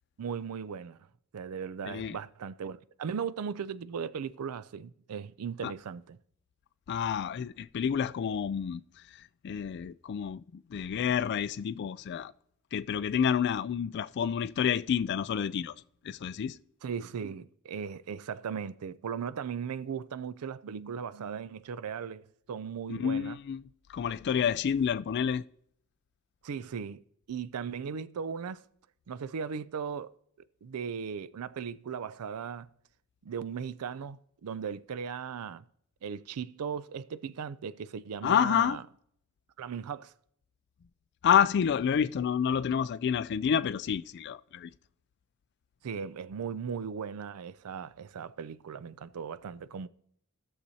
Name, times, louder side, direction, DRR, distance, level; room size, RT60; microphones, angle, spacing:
voice 1, 0.2-1.0 1.3-6.2 16.8-22.2 22.5-23.4 26.4-27.0 27.3-28.6 29.1-30.1 30.6-32.7 33.2-35.6 36.0-38.8 39.6-40.1 45.8-49.9, right 6 dB, 90° right, 0.4 m, -37 dB
voice 2, 1.9-2.2 5.6-5.7 6.9-8.8 9.4-12.3 12.7-15.7 16.0-16.6 22.9-23.6 23.9-25.5 38.2-38.8 41.2-44.7, left 8 dB, 50° left, 0.3 m, -29 dB
17.0 x 6.6 x 2.8 m
head